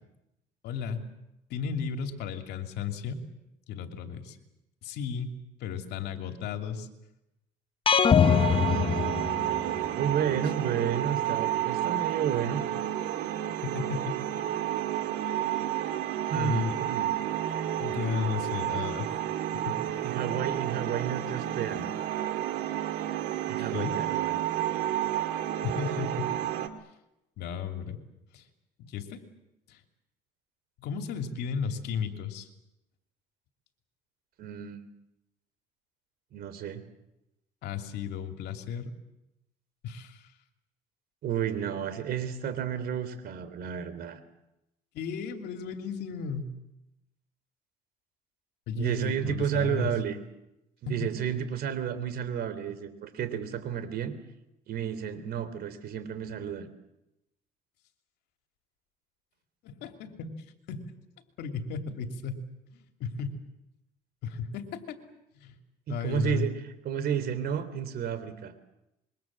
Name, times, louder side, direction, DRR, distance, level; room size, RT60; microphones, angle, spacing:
voice 1, 0.6-1.1 1.5-3.2 3.7-4.4 4.8-6.9 13.6-14.2 16.3-16.8 17.8-19.1 19.6-19.8 23.6-24.0 25.6-26.3 27.4-28.0 28.3-28.4 28.8-29.2 29.7-29.8 30.8-32.5 37.6-38.9 39.8-40.3 44.9-46.5 48.7-49.9 51.0-51.1 59.6-60.3 60.7-60.8 61.4-62.4 62.7-63.4 64.2-65.0 65.4-65.6 65.9-66.5, left 6 dB, 85° left, 5 dB, 2.8 m, -34 dB
sound 1, 7.9-9.9, left 7 dB, 30° left, 0.9 m, -23 dB
sound 2, 8.2-26.7, right 12 dB, 85° right, 2.0 m, -31 dB
voice 2, 10.0-12.6 16.3-17.1 20.0-21.9 23.5-24.4 34.4-34.8 36.3-36.8 41.2-44.2 48.7-50.2 50.8-54.2 54.7-56.7 65.9-66.5 66.9-68.5, right 8 dB, 65° right, 12 dB, 3.5 m, -31 dB
26.0 x 22.5 x 7.6 m, 0.89 s
cardioid pair, 110°, 17 cm